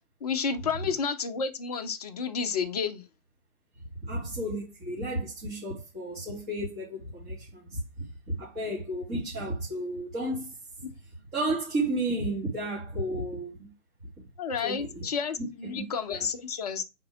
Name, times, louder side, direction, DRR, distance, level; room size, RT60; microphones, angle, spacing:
voice 1, 0.2-3.0 14.4-16.8, left 6 dB, 25° left, 0.7 m, -31 dB
voice 2, 4.0-7.8 8.3-10.6 11.3-13.7 14.6-15.0 15.4-16.3, right 1 dB, 20° right, 2.3 m, -33 dB
6.6 x 4.5 x 4.7 m
figure-of-eight pair, 140°, 43 cm